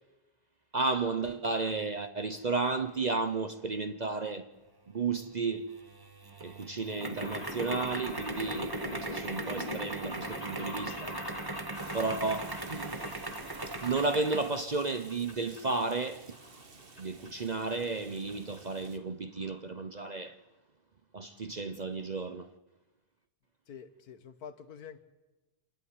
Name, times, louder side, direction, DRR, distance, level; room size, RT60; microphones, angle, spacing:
voice 1, 0.7-4.5 4.9-5.7 6.4-11.2 11.9-13.0 13.8-16.4 17.0-20.4 21.1-22.5, right 3 dB, 55° right, 0.5 m, -33 dB
sound 1, 5.7-14.6, right 2 dB, 15° right, 0.9 m, -39 dB
sound 2, 7.0-14.6 14.9-15.6 15.9-17.0 17.3-17.4 18.3-18.4 18.6-18.7 18.9-19.0 19.3-19.6 20.0-20.1 20.3-20.4, left 1 dB, 20° left, 2.4 m, -44 dB
Rain, 11.7-19.0, right 4 dB, 35° right, 1.5 m, -53 dB
voice 2, 23.7-25.0, left 7 dB, 65° left, 1.5 m, -47 dB
26.5 x 11.5 x 9.5 m
omnidirectional pair, 1.8 m